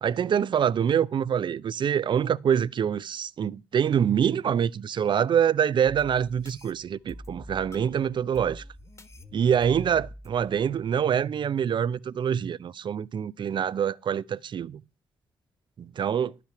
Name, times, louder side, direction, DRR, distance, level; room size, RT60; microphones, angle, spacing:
voice 1, 0.0-8.6 9.3-14.8 15.8-16.3, right 8 dB, 50° right, 0.5 m, -25 dB
sound 1, 5.9-11.5, left 1 dB, 30° left, 1.5 m, -46 dB
11.5 x 5.9 x 5.8 m
hypercardioid pair, 45°, 10 cm